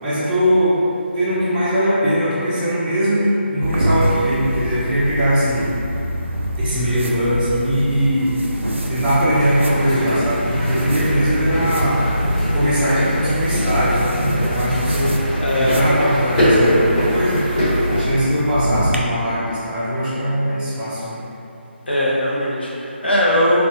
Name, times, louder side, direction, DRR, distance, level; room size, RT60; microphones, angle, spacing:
voice 1, 0.0-3.3 3.5-5.7 6.6-8.4 8.9-12.0 12.5-15.2 15.5-17.4 17.9-21.2, equal, 10° right, -15 dB, 0.5 m, -20 dB
sound 1, 3.6-19.0, equal, 80° right, 0.4 m, -25 dB
sound 2, 9.3-18.0, equal, 30° left, 1.2 m, -22 dB
voice 2, 15.4-15.8 21.9-23.7, left 1 dB, 55° left, -6 dB, 0.7 m, -19 dB
4.1 x 2.3 x 2.6 m, 2.8 s
figure-of-eight pair, 150°, 7 cm